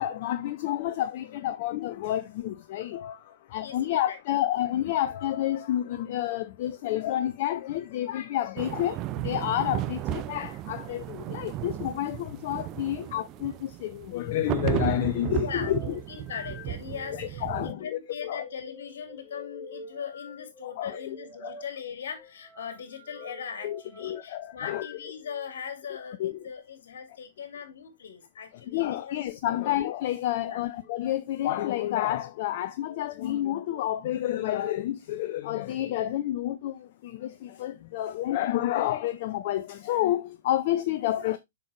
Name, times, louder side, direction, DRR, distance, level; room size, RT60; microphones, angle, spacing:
voice 1, 0.0-15.8 17.2-17.9 18.2-18.4 20.6-20.9 21.4-21.5 23.6-24.9 26.2-26.3 28.7-41.4, left 13 dB, 45° left, 0.5 m, -29 dB
voice 2, 3.6-4.2 15.4-29.2 29.5-29.6 30.3-30.7, left 7 dB, 60° left, 2.5 m, -40 dB
sound 1, 8.6-17.7, right 13 dB, 30° right, 0.4 m, -34 dB
sound 2, 15.6-25.5 26.3-26.5 28.5-28.9 29.7-30.2 30.7-31.0 31.8-32.3 32.8-33.8, left 3 dB, 5° right, 3.8 m, -47 dB
7.1 x 5.9 x 3.1 m
figure-of-eight pair, 115°, 0 cm